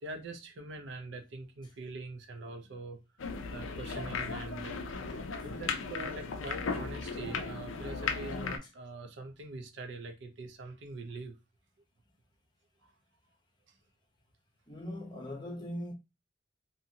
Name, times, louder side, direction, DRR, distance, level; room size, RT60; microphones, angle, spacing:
voice 1, 0.0-3.0 3.5-4.8 5.1-11.4 12.8-12.9, right 2 dB, 65° right, 0.5 m, -43 dB
sound 1, 3.2-8.6, left 4 dB, 85° left, 0.5 m, -36 dB
voice 2, 14.7-15.9, left 1 dB, 25° left, 0.6 m, -40 dB
2.7 x 2.6 x 2.7 m
head